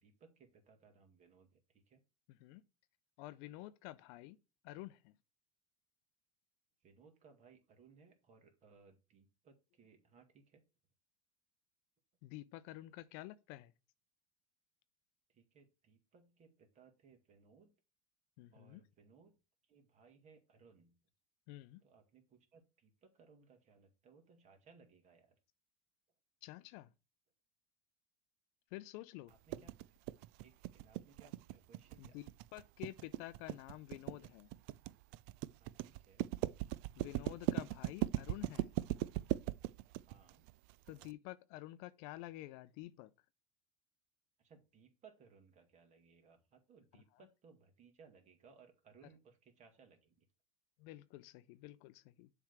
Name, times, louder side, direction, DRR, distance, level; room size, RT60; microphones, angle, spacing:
voice 1, 0.0-1.6 1.9-2.0 6.8-10.6 15.3-17.7 18.5-19.3 19.7-21.0 21.8-25.3 29.3-29.7 30.4-32.2 35.6-36.2 40.0-40.4 44.4-50.3, right 5 dB, 40° right, 2.1 m, -64 dB
voice 2, 2.3-2.6 3.2-4.4 4.6-5.1 12.2-13.7 18.4-18.8 21.5-21.8 26.4-26.9 28.7-29.7 32.0-34.5 37.0-38.7 40.9-43.1 50.8-52.3, left 17 dB, 65° left, 0.6 m, -50 dB
sound 1, 29.5-41.1, right 16 dB, 60° right, 0.4 m, -39 dB
7.2 x 3.5 x 6.0 m
hypercardioid pair, 90°, 18 cm